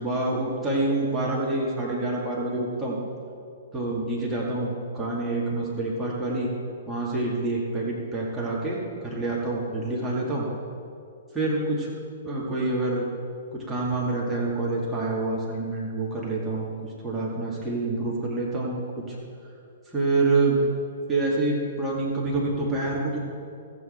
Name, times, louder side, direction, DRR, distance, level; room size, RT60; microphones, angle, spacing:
voice 1, 0.0-3.0 3.7-6.5 6.9-10.5 11.3-11.9 12.2-13.0 13.5-19.2 19.9-20.6 21.1-23.2, right 2 dB, 10° right, -6 dB, 2.3 m, -27 dB
14.0 x 8.8 x 4.4 m, 2.3 s
figure-of-eight pair, 115°, 0 cm